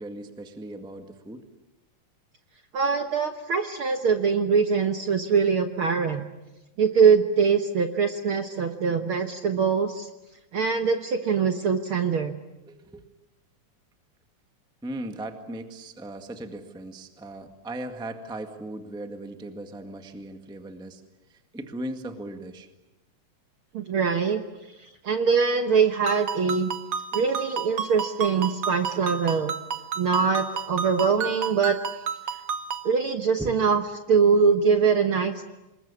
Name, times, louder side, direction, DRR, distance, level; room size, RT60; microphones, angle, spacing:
voice 1, 0.0-1.4 12.7-13.0 14.8-21.0 21.3-22.7 33.4-33.5, right 1 dB, ahead, 6 dB, 1.0 m, -37 dB
voice 2, 2.7-6.2 6.8-10.1 10.5-12.3 23.7-24.4 25.0-26.7 27.1-29.5 30.0-31.8 32.8-33.8 34.1-35.4, right 5 dB, 55° right, 7 dB, 1.6 m, -23 dB
Ringtone, 26.1-32.9, right 7 dB, 75° right, 0.9 m, -32 dB
27.0 x 21.5 x 9.8 m, 1.0 s
omnidirectional pair, 3.7 m